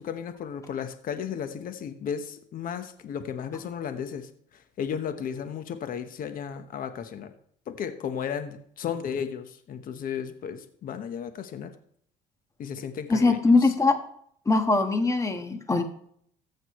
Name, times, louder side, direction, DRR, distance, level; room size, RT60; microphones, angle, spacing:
voice 1, 0.0-7.3 7.7-11.7 12.6-13.7, left 7 dB, 55° left, 9 dB, 1.1 m, -34 dB
voice 2, 13.1-13.9 14.4-15.8, left 3 dB, 20° left, 7 dB, 1.4 m, -21 dB
14.5 x 6.6 x 3.1 m, 0.65 s
cardioid pair, 110°, 17 cm